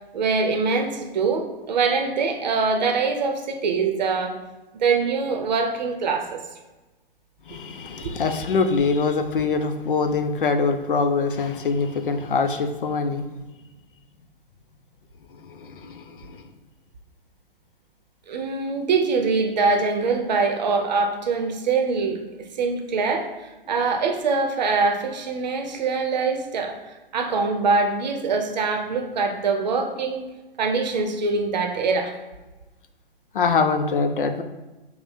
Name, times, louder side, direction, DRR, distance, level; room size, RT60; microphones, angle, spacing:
voice 1, 0.1-4.3 4.7-6.4 8.0-8.2 18.3-30.3 30.6-32.1, right 4 dB, 50° right, 4 dB, 0.7 m, -24 dB
voice 2, 7.5-13.2 15.3-16.4 33.3-34.4, left 4 dB, 65° left, 7 dB, 0.5 m, -24 dB
5.5 x 2.1 x 4.1 m, 1.1 s
figure-of-eight pair, 120°, 29 cm